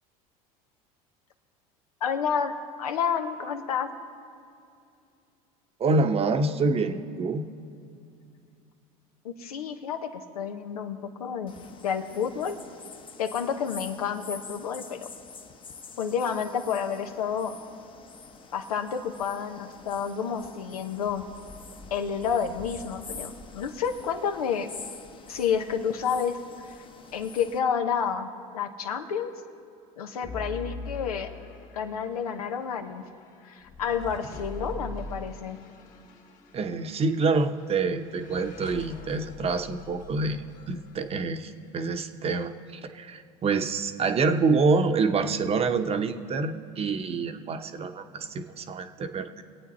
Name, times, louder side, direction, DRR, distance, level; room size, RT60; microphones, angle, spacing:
voice 1, 2.0-2.5 2.8-3.9 9.2-11.5 11.8-12.6 13.2-15.1 16.0-17.5 18.5-21.2 21.9-24.7 25.3-26.4 27.1-28.3 28.5-29.3 30.0-31.3 31.7-33.0 33.4-35.6, left 7 dB, 90° left, 6 dB, 1.0 m, -30 dB
voice 2, 5.8-7.5 36.5-49.4, right 4 dB, 35° right, 8 dB, 0.9 m, -27 dB
sound 1, 11.5-27.6, left 5 dB, 25° left, 0.9 m, -46 dB
sound 2, 30.2-41.5, left 2 dB, 45° left, 2.0 m, -43 dB
23.5 x 8.6 x 4.2 m, 2.5 s
hypercardioid pair, 85°, 19 cm